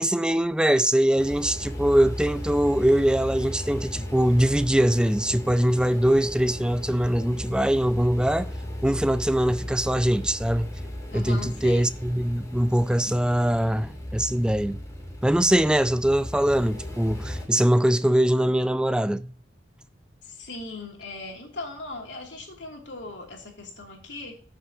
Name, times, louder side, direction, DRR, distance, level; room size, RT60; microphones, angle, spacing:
voice 1, 0.0-8.5 8.8-10.7 11.1-14.8 15.2-19.3, right 1 dB, 5° right, 0.4 m, -22 dB
sound 1, 1.2-17.5, left 1 dB, 20° left, 2.8 m, -36 dB
voice 2, 11.1-11.9 20.2-24.3, left 3 dB, 80° left, 2.6 m, -39 dB
13.0 x 6.3 x 2.8 m
head